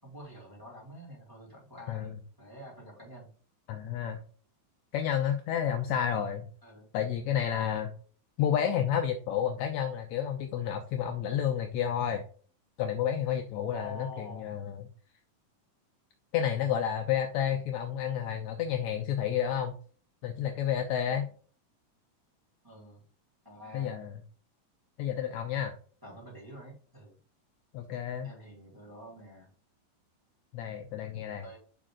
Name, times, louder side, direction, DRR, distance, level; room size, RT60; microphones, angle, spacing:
voice 1, 0.0-3.3 6.6-6.9 13.7-14.5 21.0-21.3 22.6-23.0 23.4-24.0 26.0-27.2 28.2-29.5 31.1-31.6, left 1 dB, 5° right, -3 dB, 2.8 m, -48 dB
voice 2, 3.7-4.2 4.9-6.5 6.9-7.9 8.4-12.2 12.8-14.9 16.3-19.7 20.2-21.3 23.7-24.1 25.0-25.7 27.7-28.3 30.5-31.4, left 9 dB, 80° left, 5 dB, 1.7 m, -30 dB
5.4 x 5.0 x 3.7 m, 0.42 s
omnidirectional pair, 3.8 m